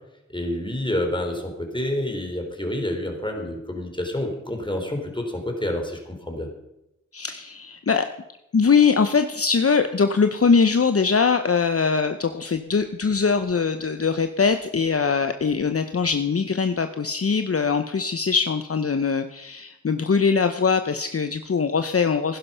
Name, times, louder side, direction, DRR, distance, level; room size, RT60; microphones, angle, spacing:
voice 1, 0.3-6.5, left 1 dB, 15° left, 2 dB, 3.8 m, -28 dB
voice 2, 7.1-8.1 8.5-22.4, left 5 dB, 50° left, 9 dB, 0.8 m, -22 dB
15.5 x 11.0 x 5.6 m, 0.90 s
wide cardioid pair, 50°, 29 cm